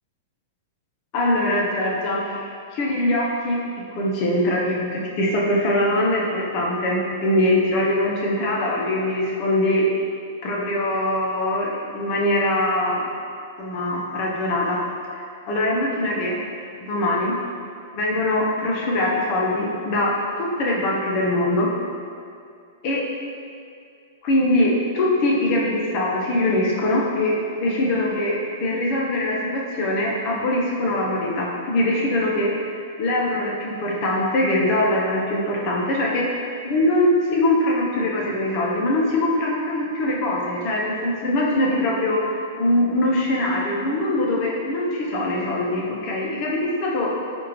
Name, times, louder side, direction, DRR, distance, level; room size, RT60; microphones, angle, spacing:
voice 1, 1.1-3.6 3.9-9.9 10.4-13.1 13.6-14.8 15.1-16.4 16.9-17.4 17.9-21.7 22.8-23.0 24.2-47.1, left 1 dB, 45° left, -3 dB, 0.8 m, -22 dB
4.5 x 2.6 x 3.1 m, 2.3 s
hypercardioid pair, 120°, 0 cm